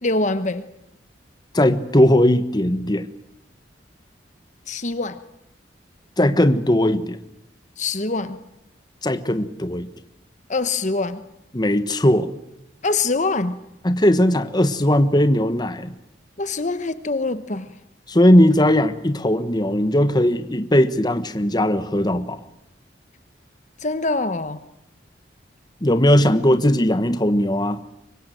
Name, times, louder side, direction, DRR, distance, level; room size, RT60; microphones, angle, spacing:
voice 1, 0.0-0.7 4.7-5.2 7.8-8.4 10.5-11.2 12.8-13.6 16.4-17.7 23.8-24.6, left 3 dB, 40° left, 12 dB, 1.1 m, -24 dB
voice 2, 1.5-3.0 6.2-7.2 9.0-9.9 11.5-12.3 13.8-15.9 18.1-22.4 25.8-27.8, left 1 dB, 25° left, 11 dB, 1.2 m, -18 dB
25.0 x 23.0 x 9.2 m, 0.81 s
head